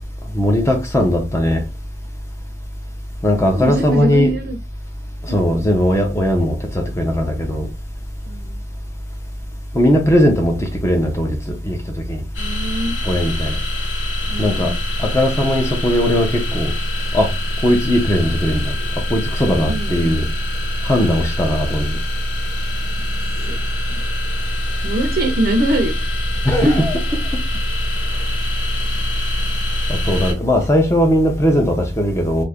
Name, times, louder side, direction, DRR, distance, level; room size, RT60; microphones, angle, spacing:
voice 1, 0.3-1.6 3.2-4.3 5.2-7.7 9.7-11.8 12.1-12.2 13.0-13.6 14.4-14.7 15.0-16.7 17.1-17.3 17.6-18.7 19.1-20.3 20.8-22.0 26.4-27.0 29.9-32.4, left 1 dB, 15° left, 0.6 m, -18 dB
voice 2, 3.5-4.6 5.3-5.4 8.2-8.6 12.4-13.0 14.3-14.8 19.7-20.2 23.5-23.6 24.8-25.9 26.6-26.8, right 1 dB, 50° right, 0.5 m, -22 dB
sound 1, 12.3-30.3, left 1 dB, 80° left, 1.1 m, -24 dB
2.7 x 2.5 x 3.4 m
head